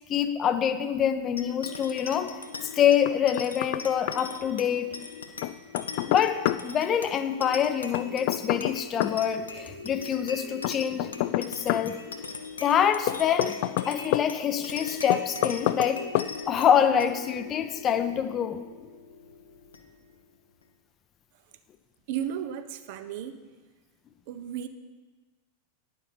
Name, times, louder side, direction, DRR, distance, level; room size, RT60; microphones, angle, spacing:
voice 1, 0.1-2.3 2.7-4.9 6.1-12.0 12.6-13.6 13.9-16.0 16.5-18.6, left 8 dB, 30° left, 10 dB, 0.7 m, -26 dB
sound 1, 1.4-20.2, left 4 dB, 75° left, 0.9 m, -40 dB
Knock, 3.1-3.8 4.1-4.2 5.4-6.6 7.9-9.2 10.6-11.9 13.1-14.3 15.1-15.9 16.1-16.3, left 16 dB, 50° left, 0.3 m, -27 dB
voice 2, 22.1-23.4 24.3-24.7, right 10 dB, 50° right, 10 dB, 0.7 m, -34 dB
10.5 x 7.0 x 5.7 m, 1.3 s
figure-of-eight pair, 90°, 0 cm